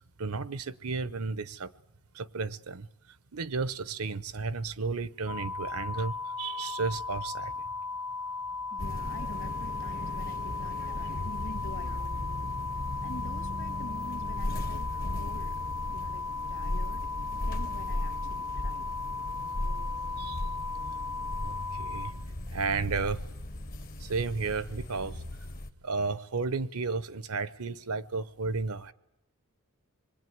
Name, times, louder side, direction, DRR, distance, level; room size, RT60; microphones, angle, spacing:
voice 1, 0.2-1.7 2.1-2.9 3.3-7.5 20.2-20.4 21.4-22.1 22.5-23.2 24.0-25.3 25.8-28.9, right 4 dB, 85° right, 0.9 m, -33 dB
sound 1, 5.3-22.1, left 4 dB, 85° left, 2.5 m, -36 dB
voice 2, 8.7-12.6 13.0-16.2 16.5-18.9, left 2 dB, 60° left, 2.1 m, -47 dB
sound 2, 8.8-25.7, left 1 dB, 40° left, 1.0 m, -37 dB
25.5 x 22.0 x 9.4 m
head